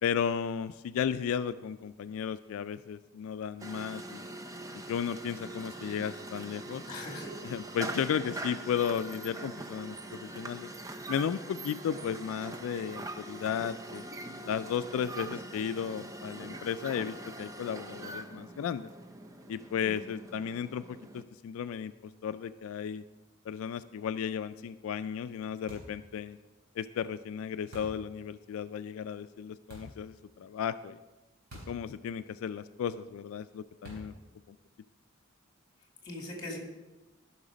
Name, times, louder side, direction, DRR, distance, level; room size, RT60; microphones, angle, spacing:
voice 1, 0.0-4.2 4.7-6.8 7.4-10.7 11.1-14.0 14.5-18.9 19.5-23.0 23.5-26.4 26.8-31.0 31.7-34.1 34.5-34.6, left 8 dB, 80° left, 12 dB, 0.3 m, -34 dB
sound 1, 3.6-21.2, right 2 dB, 15° right, 0.5 m, -43 dB
voice 2, 6.9-7.3 19.8-19.9 36.0-36.6, left 1 dB, 25° left, 0 dB, 2.3 m, -40 dB
sound 2, 25.7-26.1 27.7-28.1 29.7-30.0 31.5-31.9 32.1-32.2 33.8-34.2, equal, 50° right, 3.7 m, -47 dB
14.0 x 5.8 x 5.0 m, 1.2 s
head